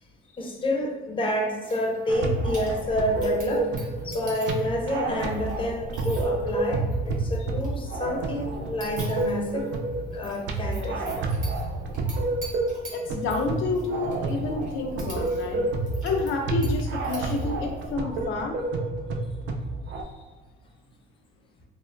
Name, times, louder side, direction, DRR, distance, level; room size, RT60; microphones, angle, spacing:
voice 1, 0.4-9.7 10.1-11.1, left 1 dB, 25° left, 0 dB, 0.6 m, -29 dB
sound 1, 1.6-17.9, right 1 dB, 40° right, 1.2 m, -47 dB
sound 2, 2.1-20.0, right 2 dB, 70° right, 0.4 m, -29 dB
voice 2, 12.9-15.6 16.0-18.6 19.9-20.0, left 3 dB, 80° left, 2 dB, 0.4 m, -29 dB
3.2 x 2.1 x 2.5 m, 1.3 s
cardioid pair, 90°, 20 cm